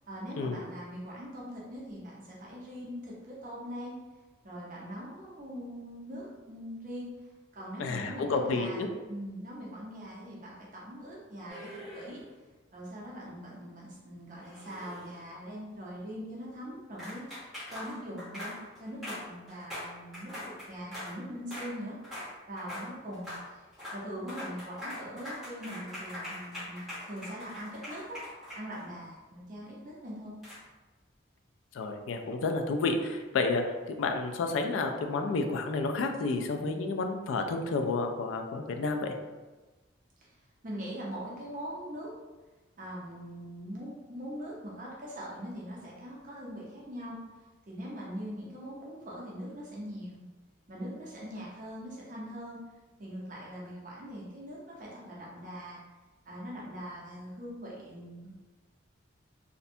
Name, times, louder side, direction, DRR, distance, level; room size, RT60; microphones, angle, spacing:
voice 1, 0.1-4.0 4.4-7.1 7.5-12.2 12.7-17.2 17.7-22.0 22.5-23.7 23.9-28.2 28.5-30.3 40.2-40.3 40.6-42.1 42.8-47.2 47.7-50.2 50.7-52.6 53.0-55.8 56.2-58.4, equal, 40° right, -5 dB, 0.5 m, -42 dB
voice 2, 7.8-8.9 31.7-39.1, left 3 dB, 80° left, 5 dB, 0.3 m, -30 dB
sound 1, 11.5-12.3 14.4-15.3 17.0-21.2 21.5-21.7 22.0-22.3 22.6-22.9 23.1-23.4 23.7-24.0 24.3-29.0 30.4-30.6, left 1 dB, ahead, 0.7 m, -42 dB
2.5 x 2.1 x 2.6 m, 1.2 s
head